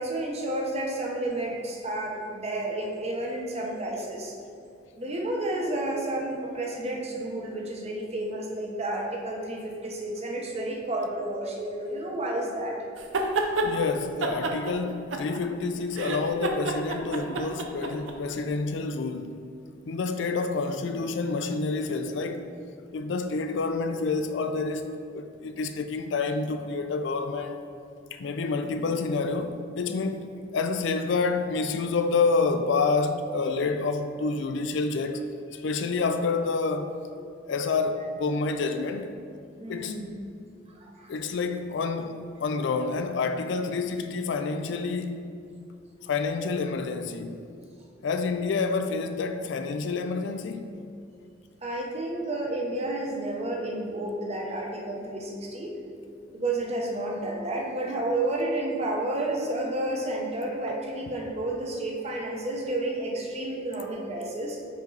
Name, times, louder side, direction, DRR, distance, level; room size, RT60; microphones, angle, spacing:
voice 1, 0.0-4.3 4.9-12.8 39.6-40.1 40.7-41.1 51.6-55.8 56.3-64.6, right 1 dB, 35° right, 0.8 m, -31 dB
sound 1, 13.0-13.7 14.2-15.6 15.9-18.1, right 2 dB, 80° right, 0.6 m, -28 dB
voice 2, 13.6-19.3 19.9-22.4 22.9-27.6 28.1-35.2 35.5-37.0 37.5-39.1 39.7-40.0 41.1-45.2 46.0-47.4 48.0-50.7, left 4 dB, 70° left, 0.4 m, -28 dB
5.3 x 5.2 x 3.9 m
head